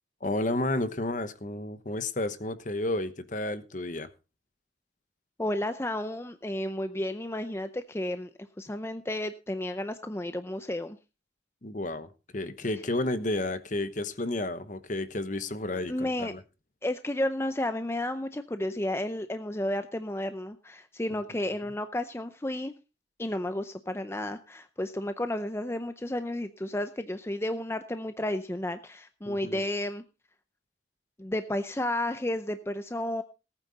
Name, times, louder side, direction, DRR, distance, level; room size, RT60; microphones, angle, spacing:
voice 1, 0.2-4.1 11.6-16.4 29.2-29.6, left 2 dB, 45° left, 1.1 m, -31 dB
voice 2, 5.4-8.3 8.6-11.0 15.9-16.3 16.8-22.7 23.2-30.0 31.2-33.2, left 1 dB, 15° left, 0.6 m, -32 dB
18.5 x 9.0 x 4.1 m
head